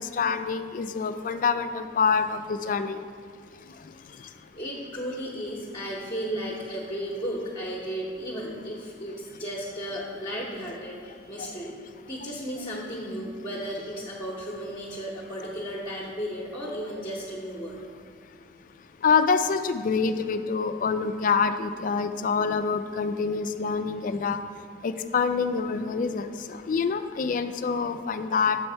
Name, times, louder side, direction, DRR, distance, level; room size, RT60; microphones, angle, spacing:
voice 1, 0.0-3.0 11.4-11.5 19.0-24.4 24.8-28.6, left 5 dB, 45° left, 10 dB, 0.3 m, -26 dB
voice 2, 4.5-11.8 12.1-17.8, equal, 25° left, -5 dB, 0.8 m, -34 dB
7.6 x 4.4 x 5.5 m, 2.3 s
head